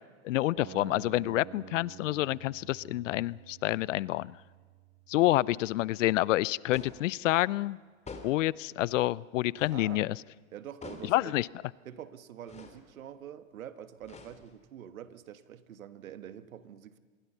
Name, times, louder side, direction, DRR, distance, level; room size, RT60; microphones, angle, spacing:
voice 1, 0.2-4.4 5.1-7.8 8.2-10.2 11.0-11.5, left 16 dB, 65° left, 23 dB, 0.7 m, -28 dB
sound 1, 0.6-6.6, right 15 dB, 35° right, 1.1 m, -51 dB
sound 2, 6.7-7.1 8.1-8.5 9.6-9.9 10.8-11.2 12.5-12.8 14.0-14.7, left 4 dB, 15° left, 2.9 m, -46 dB
voice 2, 9.7-10.1 10.5-11.3 11.9-17.0, right 10 dB, 80° right, 12 dB, 1.6 m, -46 dB
27.0 x 21.5 x 5.7 m, 1.5 s
hypercardioid pair, 110°, 41 cm